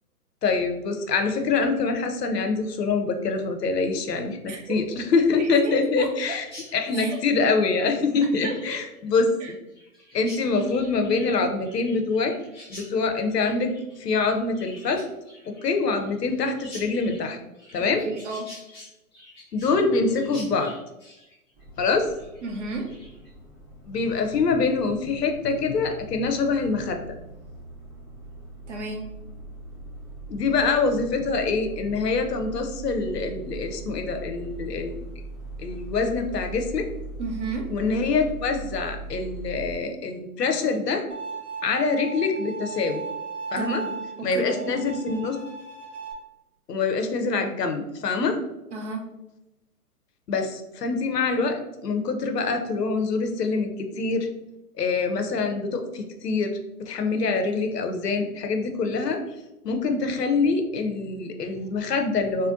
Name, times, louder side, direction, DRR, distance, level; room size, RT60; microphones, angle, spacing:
voice 1, 0.4-4.4 4.7-6.4 6.7-9.6 10.1-12.3 12.7-15.0 15.5-17.4 17.7-18.0 19.5-20.7 21.8-22.1 23.9-27.2 30.3-35.0 35.6-36.9 37.7-41.0 41.6-43.0 43.5-43.8 44.2-45.4 46.7-48.4 50.3-54.3 54.8-56.6 56.8-59.2 59.6-62.5, left 4 dB, 90° left, 5 dB, 0.7 m, -25 dB
voice 2, 4.5-4.8 5.4-6.4 6.9-7.2 8.4-8.6 9.4-9.5 18.0-18.5 22.4-22.9 28.7-29.2 37.2-37.7 43.5-44.7 48.7-49.1, right 3 dB, 50° right, 2 dB, 0.7 m, -32 dB
Chirp tweet, 6.4-23.3, left 1 dB, 15° left, 0.4 m, -48 dB
sound 1, 21.5-39.8, right 3 dB, 5° right, 1.1 m, -40 dB
Bowed string instrument, 41.1-46.1, right 5 dB, 70° right, 1.0 m, -36 dB
3.6 x 2.1 x 2.5 m, 0.95 s
hypercardioid pair, 145°, 47 cm